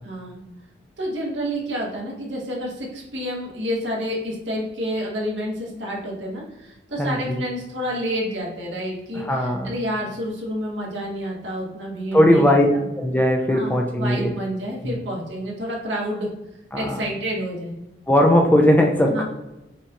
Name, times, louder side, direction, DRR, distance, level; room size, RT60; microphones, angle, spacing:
voice 1, 0.0-0.4 1.0-12.8 13.5-16.3 16.7-17.7 19.1-19.2, equal, 75° right, -2 dB, 1.1 m, -29 dB
voice 2, 7.0-7.5 9.1-9.7 12.1-12.7 13.0-14.3 14.8-15.0 16.7-17.0 18.1-19.2, left 1 dB, 10° left, 1 dB, 0.3 m, -18 dB
5.6 x 2.3 x 2.8 m, 0.96 s
head